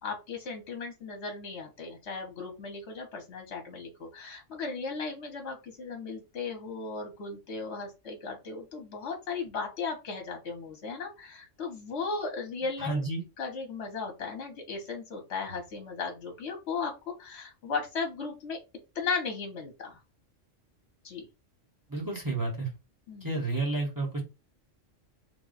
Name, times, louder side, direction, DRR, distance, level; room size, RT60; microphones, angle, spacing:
voice 1, 0.0-13.0 13.4-18.6 18.9-20.0 21.0-21.3 23.1-23.3, left 4 dB, 65° left, 1.2 m, -36 dB
voice 2, 12.8-13.2 21.9-22.7 23.2-24.2, right 2 dB, 15° right, 1.0 m, -31 dB
3.4 x 2.2 x 3.8 m
omnidirectional pair, 1.3 m